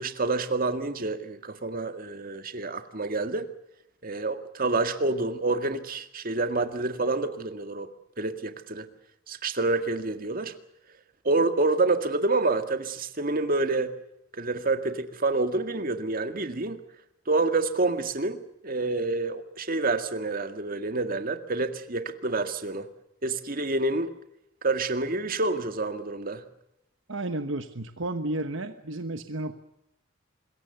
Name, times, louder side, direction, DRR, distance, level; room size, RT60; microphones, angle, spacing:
voice 1, 0.0-3.5 4.0-7.9 8.2-8.9 9.3-10.5 11.2-13.9 14.3-16.8 17.3-22.9 23.2-24.1 24.6-26.4, right 3 dB, 45° right, 8 dB, 1.9 m, -28 dB
voice 2, 27.1-29.5, right 2 dB, 70° right, 9 dB, 1.2 m, -32 dB
25.0 x 22.0 x 6.8 m, 0.84 s
head